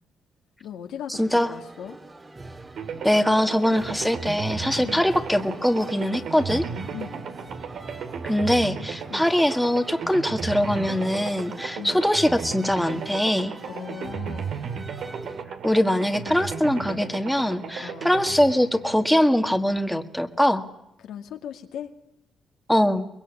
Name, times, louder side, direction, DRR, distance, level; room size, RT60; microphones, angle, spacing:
voice 1, 0.6-2.0 4.8-5.2 6.9-7.2 9.1-9.3 11.7-12.1 13.7-14.6 17.8-18.2 21.0-21.9, left 9 dB, 80° left, 4 dB, 2.2 m, -38 dB
sound 1, 1.1-15.4, right 2 dB, 25° right, 2.2 m, -43 dB
voice 2, 1.2-1.5 3.0-6.6 8.2-13.6 15.6-20.7 22.7-23.1, left 1 dB, 5° left, 6 dB, 1.9 m, -22 dB
sound 2, 2.8-19.7, right 6 dB, 70° right, 2.1 m, -35 dB
23.5 x 21.5 x 8.7 m, 0.83 s
cardioid pair, 90°, 0 cm